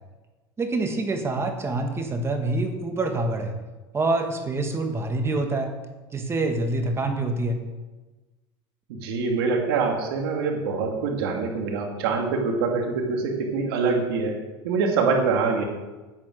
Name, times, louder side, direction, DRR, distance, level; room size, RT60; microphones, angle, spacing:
voice 1, 0.6-3.5 3.9-5.7 6.1-7.6, right 2 dB, 20° right, 5 dB, 1.5 m, -26 dB
voice 2, 8.9-15.6, right 4 dB, 85° right, 2 dB, 2.4 m, -25 dB
9.3 x 9.0 x 6.3 m, 1.2 s
supercardioid pair, 125°, 12 cm